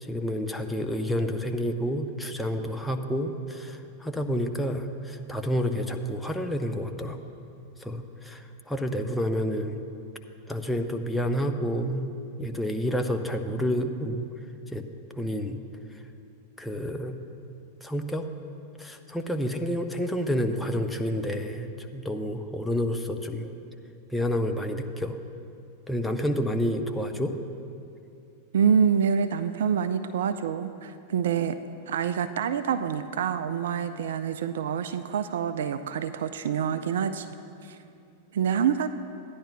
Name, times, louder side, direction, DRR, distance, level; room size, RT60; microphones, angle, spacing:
voice 1, 0.0-7.2 7.8-9.9 10.5-12.1 12.4-14.3 14.7-14.8 15.1-15.6 15.9-16.0 16.6-17.2 17.8-18.2 18.8-23.5 24.1-25.2 25.9-27.3, equal, 5° left, 5 dB, 0.6 m, -29 dB
voice 2, 28.5-31.6 31.9-37.3 37.6-37.8 38.3-38.9, right 7 dB, 60° right, 11 dB, 0.3 m, -26 dB
16.0 x 10.0 x 2.2 m, 2.6 s
figure-of-eight pair, 90°, 0 cm